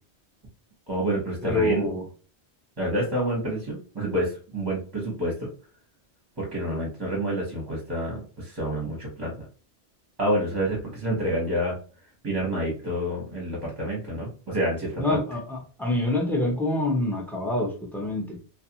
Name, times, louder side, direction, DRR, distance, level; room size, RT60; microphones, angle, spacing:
voice 1, 0.9-1.9 2.8-5.5 6.4-9.3 10.2-11.8 12.2-15.2, right 1 dB, 25° right, -4 dB, 0.8 m, -28 dB
voice 2, 1.4-2.0 15.0-18.4, left 1 dB, 5° left, -1 dB, 0.4 m, -26 dB
2.5 x 2.2 x 2.8 m, 0.38 s
omnidirectional pair, 1.1 m